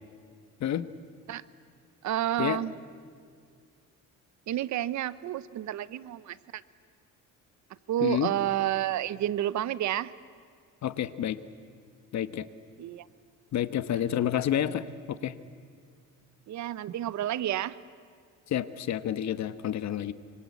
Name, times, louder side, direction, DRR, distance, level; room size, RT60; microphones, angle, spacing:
voice 1, 2.0-2.7 4.5-6.6 7.9-10.1 12.8-13.1 14.1-14.2 16.5-17.8, right 12 dB, 65° right, 17 dB, 0.9 m, -30 dB
voice 2, 10.8-11.4 12.1-12.5 13.5-15.3 18.5-20.1, left 10 dB, 60° left, 13 dB, 1.2 m, -29 dB
25.5 x 25.0 x 8.5 m, 2.1 s
cardioid pair, 110°, 31 cm